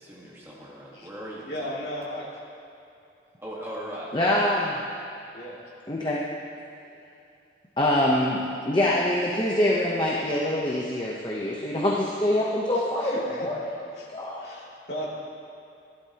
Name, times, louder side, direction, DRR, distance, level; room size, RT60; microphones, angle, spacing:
voice 1, 0.0-1.7 3.4-4.4, equal, 15° right, -6 dB, 1.6 m, -39 dB
voice 2, 1.4-2.3 5.3-5.6 13.0-13.5 13.9-14.1 14.4-15.1, equal, 65° left, -6 dB, 2.6 m, -35 dB
voice 3, 4.1-4.7 5.9-6.2 7.8-13.1 13.4-13.6 14.1-14.4, left 1 dB, 25° left, -4 dB, 0.9 m, -24 dB
16.0 x 11.5 x 2.9 m, 2.6 s
head